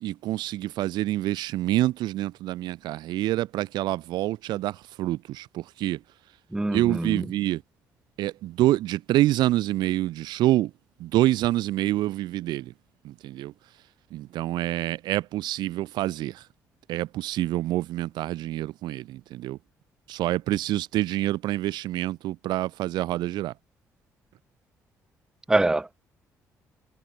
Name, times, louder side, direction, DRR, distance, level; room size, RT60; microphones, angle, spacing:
voice 1, 0.0-6.0 6.7-7.6 8.2-10.7 11.0-12.7 13.0-13.5 14.1-16.4 16.9-19.6 20.1-23.5, right 15 dB, 75° right, 0.7 m, -27 dB
voice 2, 6.5-7.2 25.5-26.0, right 2 dB, 10° right, 0.4 m, -24 dB
hypercardioid pair, 55°, 8 cm